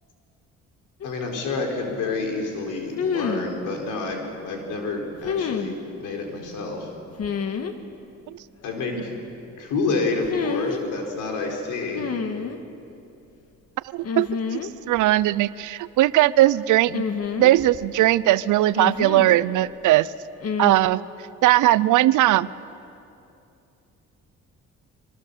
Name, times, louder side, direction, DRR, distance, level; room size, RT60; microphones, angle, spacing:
voice 1, 1.0-6.9 8.6-9.1 9.5-12.1, left 3 dB, 90° left, 1 dB, 4.3 m, -28 dB
sound 1, 1.0-1.1 3.0-3.5 5.2-5.7 7.2-7.7 10.2-10.8 11.9-12.6 14.0-14.7 15.0-15.1 16.9-17.9 18.8-19.4 20.4-20.7, left 6 dB, 55° left, 1.7 m, -28 dB
voice 2, 13.9-14.6 14.9-17.0 17.4-20.1 20.6-21.0 21.4-22.5, right 15 dB, 80° right, 18 dB, 0.6 m, -19 dB
24.5 x 23.0 x 6.9 m, 2.7 s
cardioid pair, 90°, 30 cm